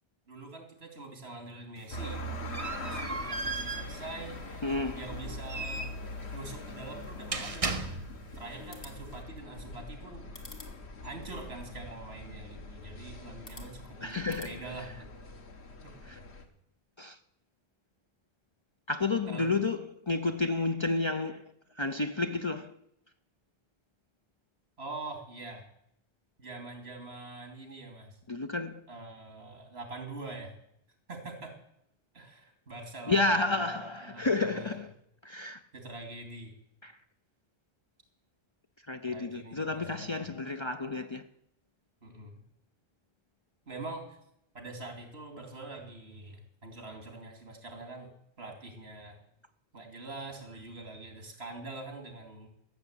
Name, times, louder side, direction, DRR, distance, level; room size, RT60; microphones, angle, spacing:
voice 1, 0.3-4.4 4.9-6.0 6.3-8.0 8.3-10.3 11.0-15.1 15.8-15.9 19.3-19.5 24.8-25.6 26.4-28.2 28.9-30.5 31.1-31.5 32.1-33.7 34.0-34.7 35.7-36.5 39.1-40.3 42.0-42.3 43.7-44.2 44.5-49.2 49.7-52.5, right 2 dB, 80° right, 2.9 m, -44 dB
sound 1, 1.8-8.4, right 3 dB, 35° right, 1.0 m, -38 dB
sound 2, 1.9-16.4, left 1 dB, 90° left, 1.6 m, -43 dB
voice 2, 4.6-5.0 14.0-14.5 16.1-16.2 17.0-17.2 18.9-21.4 21.8-22.7 28.3-28.8 33.1-34.9 35.2-35.6 36.8-36.9 38.9-41.3, left 3 dB, 35° left, 0.5 m, -31 dB
sound 3, 8.6-14.5, left 3 dB, 60° left, 2.1 m, -55 dB
13.5 x 7.3 x 8.4 m
omnidirectional pair, 1.1 m